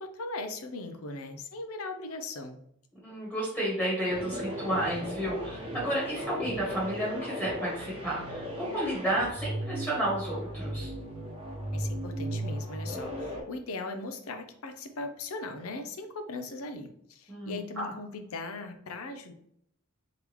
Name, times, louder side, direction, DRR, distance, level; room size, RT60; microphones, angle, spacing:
voice 1, 0.0-2.6 11.7-19.3, left 3 dB, 75° left, 7 dB, 0.6 m, -39 dB
voice 2, 3.0-10.9 17.3-17.9, right 1 dB, 10° left, -6 dB, 1.5 m, -31 dB
sound 1, 4.1-13.4, equal, 25° right, 0.9 m, -36 dB
3.8 x 3.5 x 3.0 m, 0.73 s
head